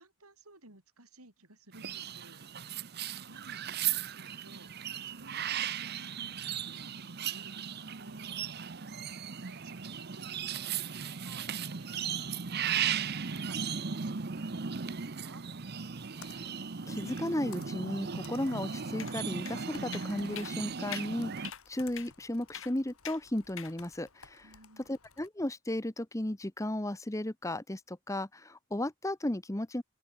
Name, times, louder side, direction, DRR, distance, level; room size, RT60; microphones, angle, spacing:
voice 1, 0.0-2.5 3.0-8.3 8.6-15.4 24.4-25.0, right 2 dB, 90° right, 6.8 m, -57 dB
sound 1, 1.7-21.5, right 7 dB, 45° right, 0.8 m, -37 dB
Computer keyboard, 15.6-25.3, left 6 dB, 80° left, 4.0 m, -57 dB
voice 2, 16.9-24.5 24.9-29.8, left 1 dB, 15° left, 0.9 m, -35 dB
sound 2, 19.0-19.2 19.5-19.6 19.9-20.1 20.4-20.5 20.9-21.1 21.4-21.6 22.0-22.1 22.5-22.7 23.0-23.2 23.6-23.7, left 10 dB, 60° left, 2.4 m, -42 dB
open air
head